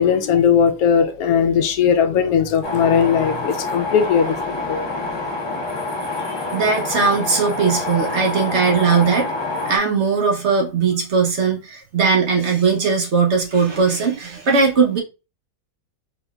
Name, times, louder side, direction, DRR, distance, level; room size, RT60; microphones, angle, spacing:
voice 1, 0.0-4.9, left 7 dB, 75° left, 1.0 m, -18 dB
sound 1, 2.6-9.8, left 2 dB, 30° left, 0.5 m, -27 dB
voice 2, 6.2-9.3 9.7-15.0, right 5 dB, 55° right, 0.9 m, -19 dB
3.9 x 3.1 x 2.3 m
omnidirectional pair, 1.7 m